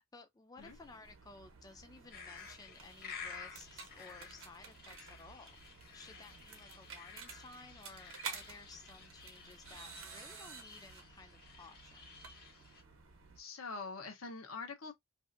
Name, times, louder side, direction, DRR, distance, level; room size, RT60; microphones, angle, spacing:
voice 1, 0.1-5.6 5.9-12.0, left 3 dB, 20° left, 0.3 m, -56 dB
sound 1, 0.6-13.4, right 5 dB, 65° right, 0.8 m, -52 dB
sound 2, 2.1-12.8, left 5 dB, 50° left, 0.9 m, -53 dB
voice 2, 13.4-14.9, left 4 dB, 90° left, 0.8 m, -44 dB
2.6 x 2.4 x 2.5 m
head